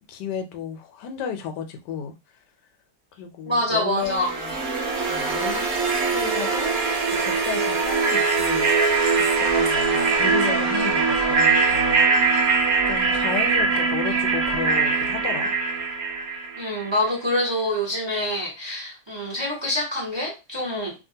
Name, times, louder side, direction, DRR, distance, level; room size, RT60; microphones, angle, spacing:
voice 1, 0.1-2.1 3.2-4.6 5.1-6.7 7.1-8.7 9.1-15.5, left 7 dB, 80° left, 1.2 m, -33 dB
voice 2, 3.4-4.3 16.6-20.9, left 1 dB, 20° right, 0.9 m, -26 dB
sound 1, 4.0-16.9, right 4 dB, 60° right, 1.1 m, -22 dB
2.8 x 2.4 x 2.7 m
omnidirectional pair, 1.8 m